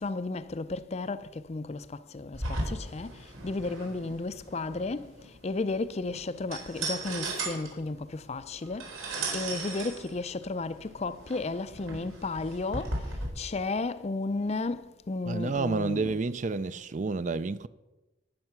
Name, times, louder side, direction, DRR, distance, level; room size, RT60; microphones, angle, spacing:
voice 1, 0.0-5.1 5.4-8.9 9.3-13.0 13.4-16.1, left 3 dB, 30° left, 0.4 m, -33 dB
sound 1, 2.3-13.3, right 2 dB, 85° right, 4.1 m, -37 dB
voice 2, 15.3-17.7, right 3 dB, 35° right, 0.4 m, -30 dB
18.5 x 6.6 x 5.9 m
head